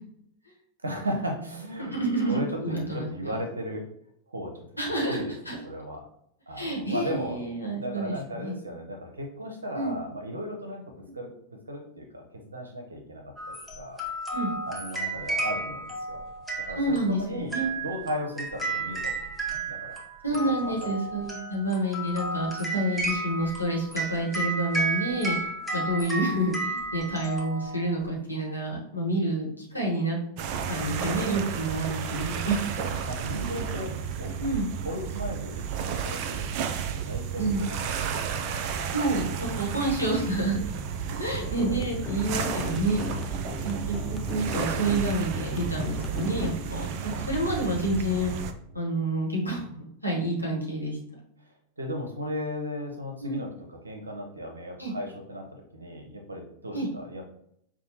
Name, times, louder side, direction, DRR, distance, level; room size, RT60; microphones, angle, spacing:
voice 1, 0.8-2.0 2.3-3.8 4.3-4.6 5.1-5.3 5.6-6.1 6.5-7.4 7.7-11.3 11.7-14.0 14.7-16.2 16.7-19.1 19.5-20.0 20.6-20.7 21.1-21.2 33.0-34.4 34.8-39.3 51.4-57.2, equal, 75° right, 3 dB, 0.8 m, -36 dB
voice 2, 1.9-3.3 4.8-5.6 6.6-8.6 9.7-10.0 11.0-11.1 14.3-14.5 16.7-17.7 20.2-25.4 25.7-30.2 30.7-32.6 34.4-34.7 37.4-37.6 38.9-40.6 41.1-43.2 43.6-48.3 48.7-49.6 50.0-51.0 53.2-53.4 54.8-54.9 56.7-56.9, right 1 dB, 90° left, -3 dB, 1.2 m, -29 dB
sound 1, 13.4-28.1, right 2 dB, ahead, 0.9 m, -33 dB
sound 2, 30.4-48.5, right 7 dB, 45° right, 0.4 m, -32 dB
sound 3, 41.3-48.3, left 4 dB, 15° left, 0.4 m, -38 dB
5.5 x 2.3 x 2.9 m, 0.72 s
figure-of-eight pair, 90°, 0 cm